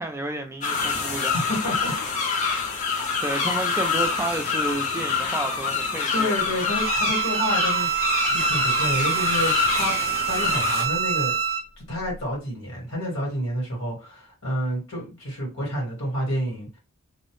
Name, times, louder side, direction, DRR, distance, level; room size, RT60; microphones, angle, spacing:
voice 1, 0.0-1.3 3.2-6.4, right 2 dB, 10° right, 0.3 m, -31 dB
sound 1, 0.6-10.8, left 5 dB, 35° left, 0.6 m, -26 dB
voice 2, 1.1-1.9 2.4-2.6 2.9-3.1 6.1-7.9 8.2-9.9 10.3-11.3 11.8-16.8, equal, 75° left, 1.5 m, -29 dB
Bowed string instrument, 6.7-11.6, right 7 dB, 75° right, 0.4 m, -26 dB
2.5 x 2.0 x 3.0 m
head